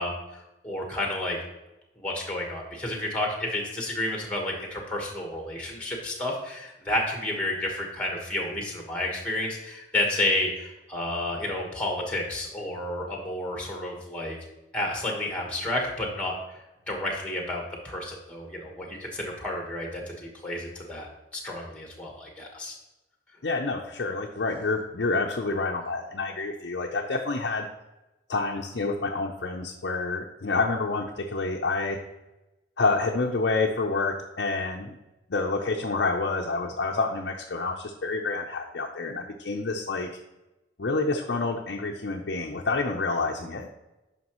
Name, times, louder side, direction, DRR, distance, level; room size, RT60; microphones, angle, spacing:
voice 1, 0.0-1.4 2.0-14.4 14.7-16.3 16.9-22.8, left 1 dB, 5° left, 1 dB, 1.2 m, -31 dB
voice 2, 23.4-27.7 28.3-32.0 32.8-35.0 35.3-40.1 40.8-43.7, left 3 dB, 65° left, 0 dB, 0.6 m, -28 dB
9.5 x 5.8 x 3.0 m, 1.0 s
head